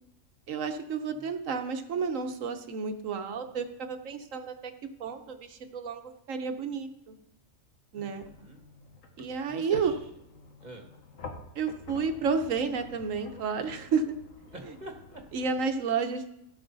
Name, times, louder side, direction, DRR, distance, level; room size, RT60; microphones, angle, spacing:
voice 1, 0.5-4.7 5.0-6.0 6.3-7.1 7.9-8.3 9.2-9.9 11.5-14.1 15.3-16.3, right 5 dB, 80° right, 7 dB, 1.3 m, -31 dB
voice 2, 7.9-8.6 9.4-10.0 10.6-10.9 14.5-15.2, right 1 dB, 35° right, 3 dB, 1.6 m, -47 dB
sound 1, 8.2-15.6, left 3 dB, 85° left, 1.5 m, -48 dB
16.0 x 6.5 x 4.0 m, 0.84 s
omnidirectional pair, 1.3 m